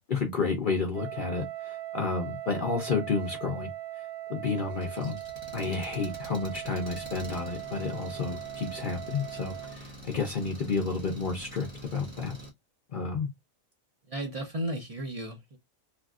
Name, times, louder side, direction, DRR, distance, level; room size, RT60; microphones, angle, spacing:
voice 1, 0.0-3.7 4.3-5.2 5.5-12.4 12.9-13.3, left 4 dB, 50° left, 0.6 m, -31 dB
Wind instrument woodwind instrument, 0.9-9.8, right 14 dB, 70° right, 1.1 m, -40 dB
Engine, 4.7-12.5, right 1 dB, 25° right, 0.9 m, -46 dB
voice 2, 14.1-15.6, right 1 dB, 50° right, 0.4 m, -34 dB
3.4 x 2.4 x 2.4 m
omnidirectional pair, 1.4 m